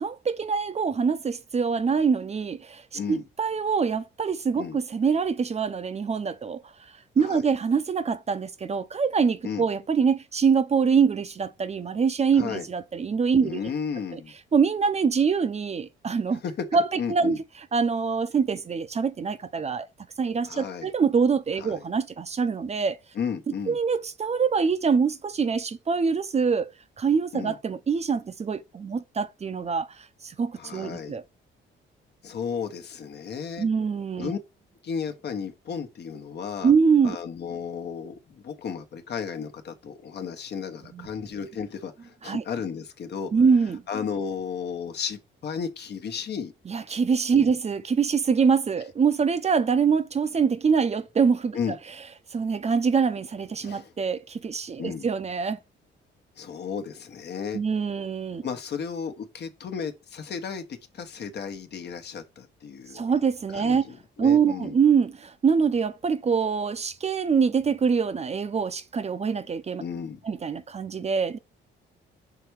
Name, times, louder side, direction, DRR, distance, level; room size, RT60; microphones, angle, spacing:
voice 1, 0.0-2.8 3.1-6.6 7.2-13.6 14.1-14.2 14.5-16.4 16.7-17.4 17.7-19.9 20.2-23.0 23.5-26.7 27.0-31.2 33.6-34.3 36.6-37.2 40.9-41.1 42.2-42.4 43.3-43.8 46.7-51.6 52.3-55.6 57.5-58.5 62.9-63.8 64.2-69.8 70.2-71.4, right 6 dB, 35° right, 0.6 m, -24 dB
voice 2, 13.4-14.3 16.4-16.6 17.0-17.4 20.5-20.9 21.6-21.8 23.1-23.8 27.3-27.5 30.6-31.1 32.2-33.7 34.2-34.4 34.8-36.7 37.0-43.3 43.9-46.5 47.3-47.5 51.5-51.8 53.6-53.9 54.8-55.0 56.4-57.6 58.4-60.6 60.9-63.0 63.5-64.7 69.8-70.2, left 6 dB, 55° left, 1.1 m, -34 dB
5.9 x 3.4 x 4.7 m
cardioid pair, 90°, 20 cm